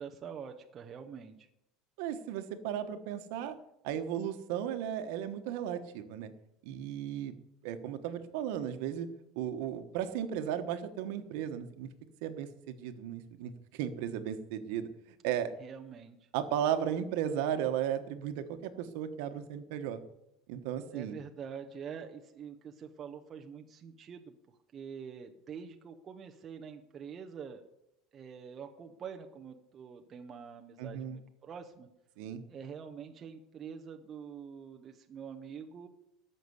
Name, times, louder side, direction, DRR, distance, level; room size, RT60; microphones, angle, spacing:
voice 1, 0.0-1.5 15.6-16.2 20.9-27.6 28.1-31.9 32.5-35.9, right 7 dB, 25° right, 4 dB, 0.7 m, -46 dB
voice 2, 2.0-3.6 3.8-6.3 6.6-7.3 7.6-9.1 9.3-11.9 12.2-14.9 15.2-15.5 16.3-20.0 20.5-21.1 30.8-31.2 32.2-32.4, right 9 dB, 65° right, 10 dB, 1.2 m, -35 dB
14.0 x 6.6 x 8.0 m, 0.86 s
cardioid pair, 175°, 0 cm